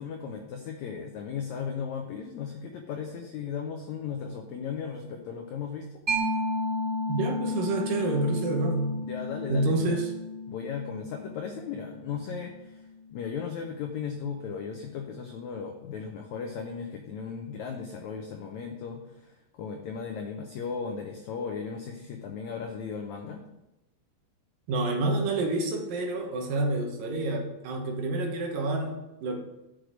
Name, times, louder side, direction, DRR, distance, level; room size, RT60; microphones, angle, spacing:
voice 1, 0.0-5.9 9.0-10.0 10.5-23.4, left 6 dB, 85° left, 3 dB, 1.6 m, -36 dB
Mallet percussion, 6.1-13.3, left 1 dB, 20° right, 2.3 m, -33 dB
voice 2, 7.1-8.9 9.5-10.1 24.7-29.4, right 2 dB, 75° right, 2 dB, 2.8 m, -28 dB
6.5 x 6.4 x 6.0 m, 0.94 s
omnidirectional pair, 4.2 m